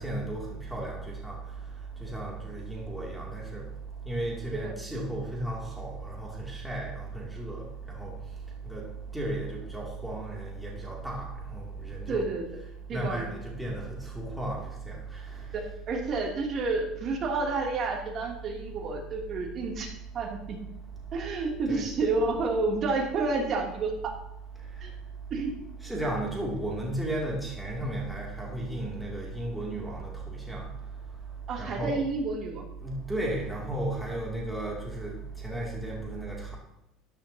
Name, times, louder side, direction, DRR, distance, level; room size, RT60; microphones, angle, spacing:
voice 1, 0.0-1.4 2.0-3.7 4.0-8.1 8.6-8.8 9.1-12.3 12.9-15.4 21.7-21.9 25.8-30.7 31.6-32.0 32.8-36.6, right 1 dB, ahead, -3 dB, 2.7 m, -34 dB
voice 2, 12.1-12.4 12.9-13.2 15.5-15.6 15.9-19.9 20.1-20.6 21.1-24.1 24.8-24.9 25.3-25.5 31.5-32.6, right 3 dB, 40° right, 0 dB, 2.8 m, -30 dB
13.5 x 11.0 x 2.9 m, 0.86 s
supercardioid pair, 115°, 0 cm